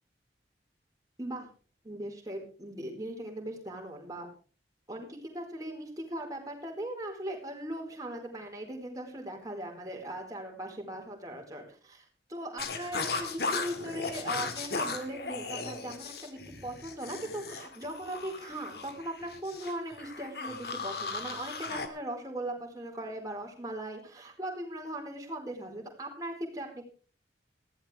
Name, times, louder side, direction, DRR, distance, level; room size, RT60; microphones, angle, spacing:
voice 1, 1.8-4.3 4.9-12.0 12.3-26.8, right 1 dB, 20° right, 1 dB, 4.6 m, -39 dB
sound 1, 12.6-21.9, left 4 dB, 60° left, 2.2 m, -37 dB
19.5 x 15.5 x 3.4 m, 0.39 s
head